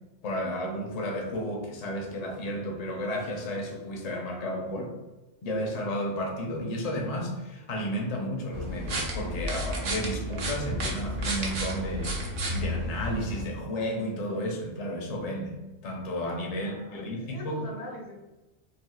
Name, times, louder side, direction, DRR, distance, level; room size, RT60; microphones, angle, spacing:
voice 1, 0.2-4.9 5.4-15.5 15.8-17.6, equal, 50° left, 1 dB, 0.5 m, -32 dB
sound 1, 8.5-13.4, equal, 55° right, 0.7 m, -32 dB
voice 2, 16.6-18.1, left 1 dB, 85° left, -1 dB, 1.1 m, -42 dB
3.3 x 2.4 x 2.3 m, 1.1 s
omnidirectional pair, 1.2 m